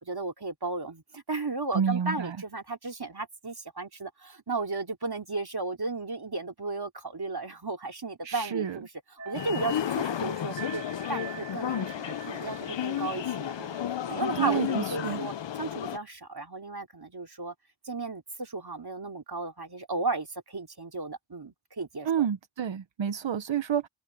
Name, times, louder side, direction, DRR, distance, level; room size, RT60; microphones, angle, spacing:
voice 1, 0.0-8.9 9.2-10.8 11.1-13.8 14.0-17.5 17.8-22.3, right 3 dB, 60° right, 3.1 m, -34 dB
voice 2, 1.7-2.4 8.2-8.8 14.4-15.2 22.0-23.9, right 8 dB, 90° right, 0.7 m, -29 dB
sound 1, 9.2-14.4 14.7-14.9, right 6 dB, 35° right, 3.0 m, -46 dB
sound 2, 9.3-16.0, left 10 dB, 80° left, 0.6 m, -32 dB
wide cardioid pair, 45°, 43 cm